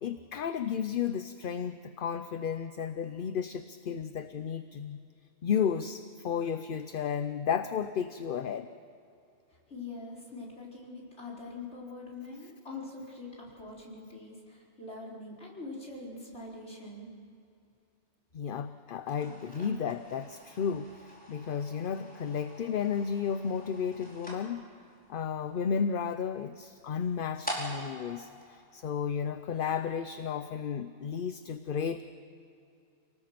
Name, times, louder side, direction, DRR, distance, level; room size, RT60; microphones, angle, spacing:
voice 1, 0.0-5.0 5.4-8.7 18.3-24.6 25.1-32.0, left 7 dB, 55° left, 10 dB, 0.8 m, -33 dB
voice 2, 9.7-17.1, left 3 dB, 75° left, -4 dB, 5.0 m, -43 dB
sound 1, 19.0-29.4, equal, 5° left, 5.0 m, -46 dB
29.5 x 19.0 x 5.9 m, 2.6 s
omnidirectional pair, 1.2 m